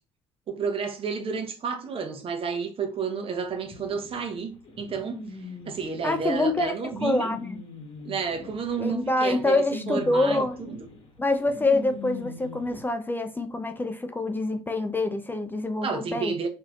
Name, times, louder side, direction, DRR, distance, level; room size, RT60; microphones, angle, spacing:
voice 1, 0.5-7.3 8.0-9.6 9.9-10.8 15.8-16.5, right 5 dB, 45° right, 0.8 m, -31 dB
sound 1, 3.7-12.8, left 3 dB, 45° left, 1.0 m, -41 dB
voice 2, 6.0-6.7 7.0-7.6 8.8-10.6 11.2-16.3, left 2 dB, 15° left, 0.4 m, -26 dB
3.2 x 2.7 x 2.4 m
hypercardioid pair, 65°, 13 cm